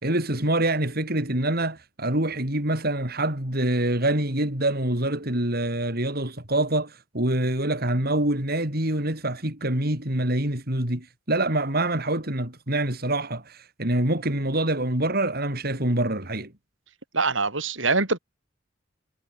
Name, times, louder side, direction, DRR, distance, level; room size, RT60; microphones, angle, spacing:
voice 1, 0.0-16.5, right 1 dB, 55° right, 5.9 m, -25 dB
voice 2, 17.1-18.2, right 3 dB, 90° right, 7.5 m, -23 dB
head